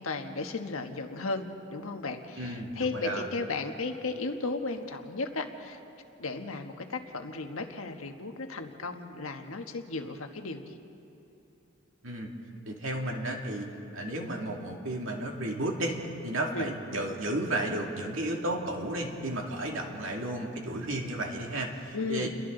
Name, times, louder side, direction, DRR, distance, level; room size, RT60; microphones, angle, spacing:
voice 1, 0.0-5.8 6.2-10.8 16.5-16.7 21.9-22.3, left 3 dB, 80° left, 5 dB, 1.4 m, -35 dB
voice 2, 2.4-3.2 12.0-12.3 12.7-13.7 13.9-22.3, right 1 dB, 70° right, 1 dB, 2.5 m, -33 dB
30.0 x 22.5 x 3.9 m, 2.9 s
head